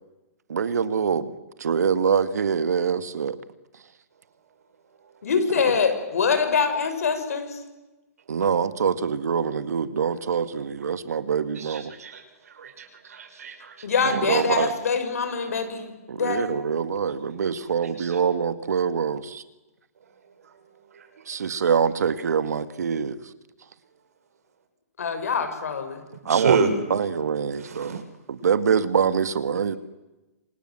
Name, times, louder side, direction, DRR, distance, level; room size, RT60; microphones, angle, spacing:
voice 1, 0.5-1.3 1.6-3.4 8.3-11.9 14.0-14.7 16.1-19.4 21.3-23.2 26.3-26.6 26.9-29.8, right 6 dB, 85° right, 12 dB, 2.0 m, -24 dB
voice 2, 5.2-7.6 13.8-16.5 25.0-26.0, left 5 dB, 65° left, 8 dB, 6.3 m, -24 dB
voice 3, 11.6-12.2 12.6-13.7 18.0-18.2 26.3-26.7 27.6-28.0, right 5 dB, 70° right, 8 dB, 5.9 m, -28 dB
27.5 x 26.0 x 7.6 m, 1.1 s
hypercardioid pair, 180°, 9 cm